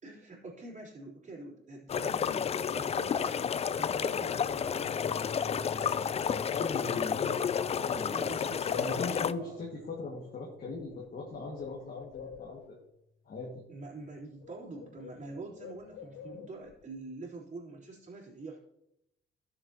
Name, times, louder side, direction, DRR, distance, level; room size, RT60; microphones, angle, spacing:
voice 1, 0.0-3.5 3.8-4.8 8.0-9.6 13.7-18.6, right 2 dB, 35° right, -4 dB, 3.8 m, -45 dB
sound 1, 1.9-9.3, left 7 dB, 30° left, 0.4 m, -31 dB
sound 2, 4.8-13.2, left 3 dB, 80° right, 1.5 m, -53 dB
voice 2, 5.4-8.2 8.7-12.8 13.3-13.5, left 3 dB, 50° left, -3 dB, 2.1 m, -40 dB
Bird, 9.9-10.0 10.3-12.8 13.9-14.1 14.4-16.8, left 8 dB, 75° left, 0.7 m, -49 dB
13.0 x 7.1 x 3.0 m, 0.81 s
cardioid pair, 90°, 20 cm